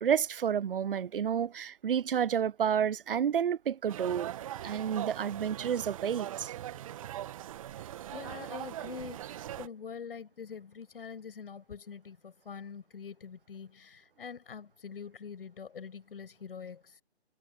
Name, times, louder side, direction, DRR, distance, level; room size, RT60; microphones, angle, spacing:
voice 1, 0.0-4.3 4.6-6.5, right 8 dB, 55° right, 0.5 m, -30 dB
sound 1, 3.9-9.7, right 12 dB, 30° right, 1.5 m, -41 dB
voice 2, 7.7-17.0, left 6 dB, 55° left, 7.3 m, -45 dB
figure-of-eight pair, 145°, 34 cm